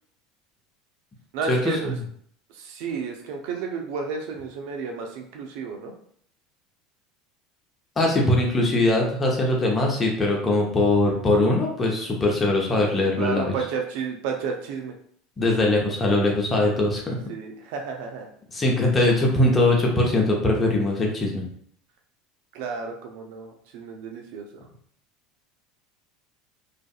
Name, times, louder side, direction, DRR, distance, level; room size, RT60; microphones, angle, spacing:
voice 1, 1.3-2.0 2.5-5.9 13.2-14.9 17.3-18.3 22.5-24.5, right 5 dB, 70° right, 3 dB, 0.5 m, -31 dB
voice 2, 8.0-13.5 15.4-17.0 18.5-21.5, left 2 dB, 25° left, -1 dB, 0.7 m, -21 dB
2.5 x 2.5 x 2.3 m, 0.63 s
hypercardioid pair, 80°, 0 cm